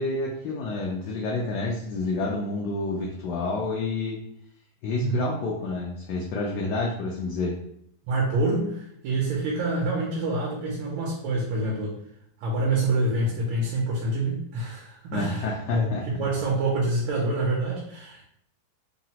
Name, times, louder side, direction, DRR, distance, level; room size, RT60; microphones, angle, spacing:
voice 1, 0.0-4.2 4.8-7.6 15.1-16.3, left 3 dB, 75° left, -2 dB, 1.0 m, -29 dB
voice 2, 8.0-12.0 12.4-18.2, right 2 dB, 80° right, -3 dB, 1.5 m, -26 dB
3.8 x 2.0 x 2.8 m, 0.71 s
omnidirectional pair, 2.2 m